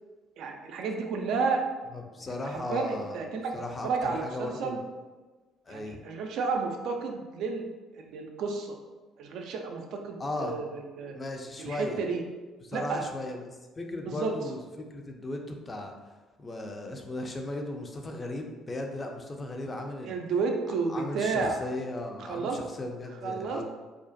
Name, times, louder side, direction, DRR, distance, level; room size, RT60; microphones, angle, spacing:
voice 1, 0.4-1.7 2.4-4.8 5.7-7.7 7.9-8.8 9.2-11.1 11.6-12.2 12.7-13.1 14.1-14.4 20.0-21.6 22.2-22.6 23.2-23.6, right 4 dB, 70° right, 3 dB, 0.3 m, -31 dB
voice 2, 1.9-3.2 3.5-4.8 5.7-6.1 10.2-10.6 11.1-12.0 12.6-15.9 16.4-20.2 20.9-23.6, left 2 dB, 30° left, 2 dB, 0.4 m, -36 dB
2.4 x 2.1 x 2.5 m, 1.3 s
hypercardioid pair, 60°, 0 cm